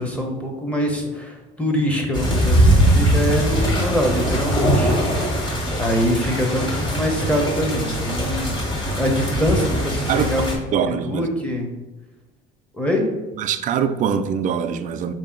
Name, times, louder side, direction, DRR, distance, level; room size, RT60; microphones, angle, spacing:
voice 1, 0.0-4.9 5.8-8.6 9.0-10.5 11.0-11.7 12.7-13.1, equal, 5° left, 1 dB, 0.9 m, -24 dB
sound 1, 2.1-10.5, equal, 25° left, 1.5 m, -21 dB
voice 2, 10.7-11.3 13.4-15.1, right 7 dB, 40° right, 9 dB, 0.4 m, -23 dB
5.1 x 2.8 x 3.7 m, 1.1 s
cardioid pair, 115°, 19 cm